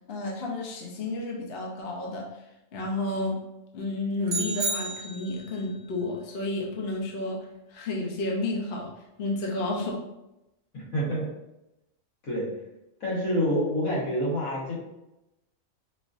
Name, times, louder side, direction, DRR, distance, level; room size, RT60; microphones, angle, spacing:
voice 1, 0.1-2.2 2.7-3.4 3.7-8.9 9.2-10.0, left 2 dB, 55° left, -1 dB, 0.8 m, -31 dB
sound 1, 4.3-5.6, right 3 dB, 50° right, 0.8 m, -31 dB
voice 2, 10.7-11.3 12.2-12.5 13.0-14.7, equal, 85° left, -5 dB, 1.7 m, -27 dB
5.0 x 2.5 x 2.4 m, 0.91 s
omnidirectional pair, 1.4 m